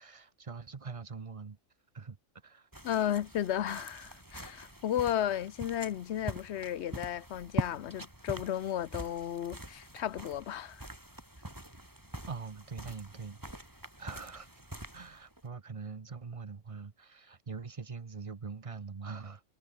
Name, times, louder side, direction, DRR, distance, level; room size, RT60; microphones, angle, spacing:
voice 1, 0.0-1.6 1.9-2.2 2.4-2.7 3.0-3.1 12.3-14.5 14.9-19.4, right 5 dB, 30° right, 0.8 m, -43 dB
sound 1, 2.7-15.5, right 1 dB, 15° right, 3.4 m, -44 dB
voice 2, 2.8-10.9, left 10 dB, 65° left, 1.0 m, -34 dB
omnidirectional pair, 1.3 m